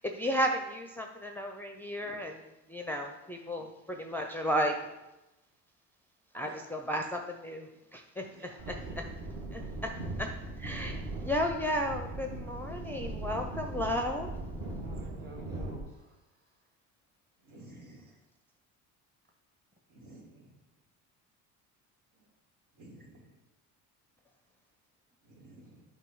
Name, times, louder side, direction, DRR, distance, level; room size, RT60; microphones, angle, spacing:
voice 1, 0.1-4.7 6.3-8.8 9.5-9.9 10.2-10.3 10.6-14.3, equal, 5° left, 3 dB, 0.5 m, -34 dB
voice 2, 8.2-9.2 14.7-16.5 17.6-18.2 23.0-23.1, right 2 dB, 25° right, 1 dB, 1.6 m, -53 dB
sound 1, 8.6-15.8, right 2 dB, 50° right, 1.8 m, -39 dB
voice 3, 17.4-18.1 19.9-20.5 22.2-22.3 22.7-23.4 25.2-25.8, right 1 dB, 75° right, -1 dB, 2.0 m, -53 dB
8.1 x 2.8 x 5.4 m, 0.96 s
supercardioid pair, 85°, 40 cm